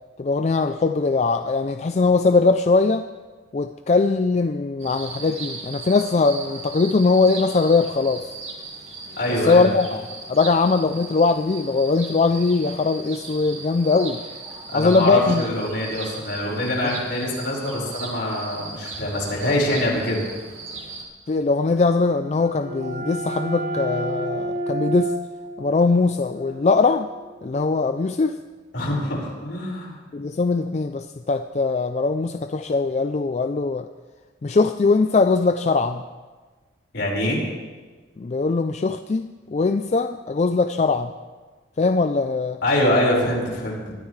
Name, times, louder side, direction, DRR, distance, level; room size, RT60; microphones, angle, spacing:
voice 1, 0.2-3.1 3.5-8.3 9.5-14.2 14.7-15.4 21.3-25.1 25.6-27.1 27.4-28.4 30.1-33.9 34.4-36.0 38.2-41.1 41.8-42.6, left 4 dB, 35° left, 8 dB, 0.4 m, -21 dB
sound 1, 4.8-21.0, right 3 dB, 35° right, 2.2 m, -37 dB
voice 2, 9.2-9.7 14.7-20.2 28.7-30.0 36.9-37.4 42.6-43.9, left 1 dB, 70° left, -3 dB, 4.8 m, -24 dB
sound 2, 22.1-27.6, right 1 dB, 55° right, 0.7 m, -31 dB
21.5 x 13.0 x 3.2 m, 1.4 s
head